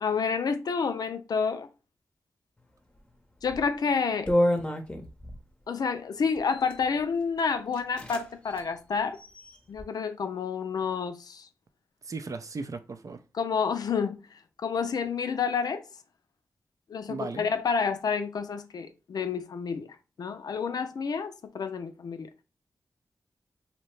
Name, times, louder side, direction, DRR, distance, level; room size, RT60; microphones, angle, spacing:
voice 1, 0.0-1.7 3.4-4.3 5.7-9.2 9.7-11.5 13.4-14.2 14.6-15.8 16.9-19.9 20.2-22.3, left 5 dB, 75° left, 0.4 m, -29 dB
sound 1, 3.4-3.7 4.3-5.4 6.4-6.8 7.4-7.5 7.7-8.2 8.5-8.6 9.1-9.8, equal, 15° left, 0.7 m, -29 dB
voice 2, 12.0-13.2 17.1-17.5, right 4 dB, 55° right, 0.5 m, -37 dB
2.7 x 2.0 x 3.1 m
cardioid pair, 45°, 7 cm